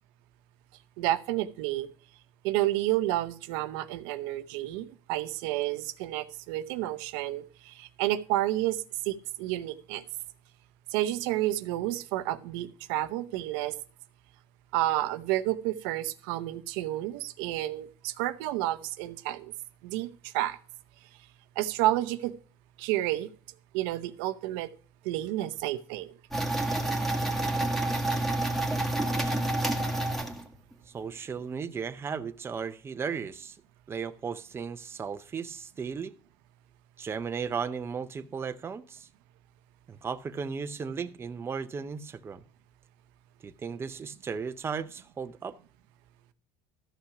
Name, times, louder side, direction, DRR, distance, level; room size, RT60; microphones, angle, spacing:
voice 1, 1.0-1.9 2.4-10.0 10.9-13.8 14.7-19.5 19.8-20.6 21.6-22.3 22.8-23.3 23.7-24.7 25.0-26.1, right 15 dB, 85° right, 0.7 m, -30 dB
sound 1, 26.3-30.7, right 1 dB, ahead, 1.7 m, -28 dB
voice 2, 30.9-33.6 33.9-36.1 37.0-39.1 39.9-42.4 43.4-45.6, right 6 dB, 20° right, 0.6 m, -35 dB
13.0 x 5.8 x 5.9 m
cardioid pair, 130°, 11 cm